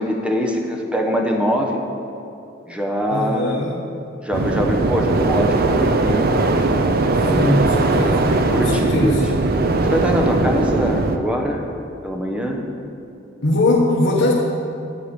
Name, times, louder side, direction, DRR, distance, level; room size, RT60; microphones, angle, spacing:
voice 1, 0.0-1.8 2.7-3.6 4.2-6.4 7.2-7.6 8.5-9.2 9.8-11.6 12.0-12.7, equal, 5° right, 1 dB, 1.0 m, -23 dB
voice 2, 3.1-3.8 7.3-9.3 13.4-14.3, left 2 dB, 65° left, -4 dB, 1.1 m, -20 dB
sound 1, 4.3-11.2, right 2 dB, 50° right, 0.6 m, -19 dB
11.5 x 4.9 x 8.5 m, 2.7 s
head